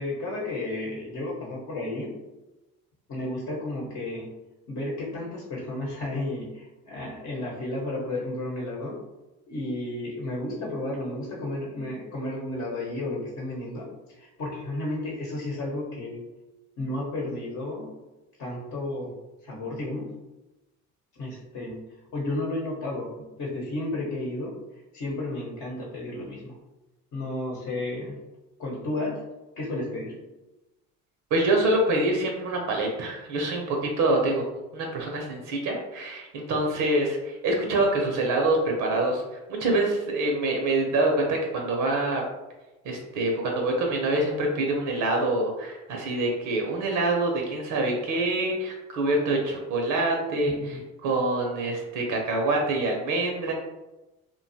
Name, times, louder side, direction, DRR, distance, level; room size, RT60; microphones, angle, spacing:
voice 1, 0.0-2.1 3.1-4.3 4.7-9.0 9.5-16.2 16.8-18.0 18.4-19.1 19.4-20.1 21.1-21.8 22.1-24.5 24.9-26.5 27.1-28.2 28.6-29.2 29.6-30.1 50.5-50.8, left 2 dB, 50° left, -3 dB, 0.9 m, -32 dB
voice 2, 31.3-34.4 34.7-39.2 39.5-42.2 42.8-53.5, right 2 dB, 55° right, 1 dB, 0.7 m, -25 dB
2.6 x 2.3 x 2.6 m, 1.0 s
hypercardioid pair, 75°, 37 cm